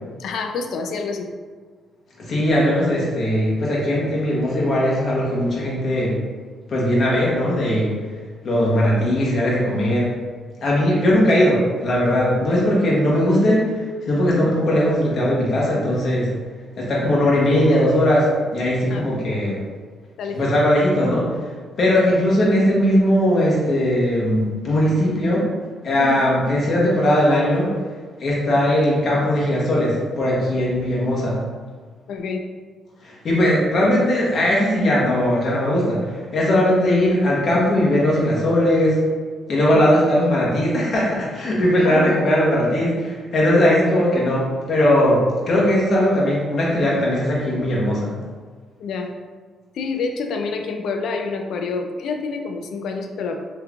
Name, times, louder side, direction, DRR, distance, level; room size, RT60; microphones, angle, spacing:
voice 1, 0.2-1.3 18.9-19.1 20.2-20.4 26.0-26.2 32.1-32.4 39.7-39.9 41.8-42.1 48.8-49.1 49.7-53.3, left 4 dB, 70° left, 4 dB, 0.3 m, -27 dB
voice 2, 2.3-6.2 6.7-7.9 8.4-10.1 10.6-13.7 14.1-16.3 16.8-19.6 20.3-21.3 21.8-25.5 25.8-27.7 28.2-31.4 33.0-39.0 39.5-48.1, left 1 dB, 55° left, -5 dB, 1.1 m, -19 dB
3.3 x 3.1 x 2.4 m, 1.5 s
cardioid pair, 90°, 0 cm